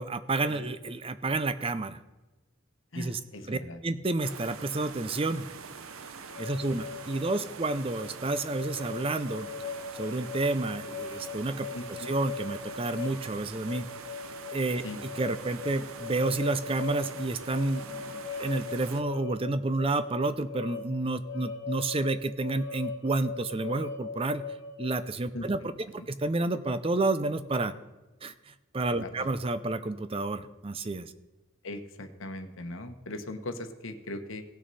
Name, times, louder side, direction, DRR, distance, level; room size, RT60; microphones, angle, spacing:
voice 1, 0.0-2.0 3.0-3.2 3.5-5.5 6.4-9.5 9.9-13.9 14.5-14.8 15.2-24.4 24.8-25.6 25.9-27.7 28.2-31.1, right 2 dB, 25° right, 12 dB, 0.5 m, -30 dB
voice 2, 2.9-3.8 6.7-6.8 11.7-12.1 14.8-15.0 25.3-25.5 29.0-29.3 31.6-34.4, left 1 dB, 70° left, 7 dB, 1.1 m, -39 dB
sound 1, 4.2-19.0, right 5 dB, 80° right, 0.7 m, -45 dB
sound 2, 6.3-25.1, left 5 dB, 55° left, 0.8 m, -40 dB
18.0 x 6.2 x 4.1 m, 1.2 s
head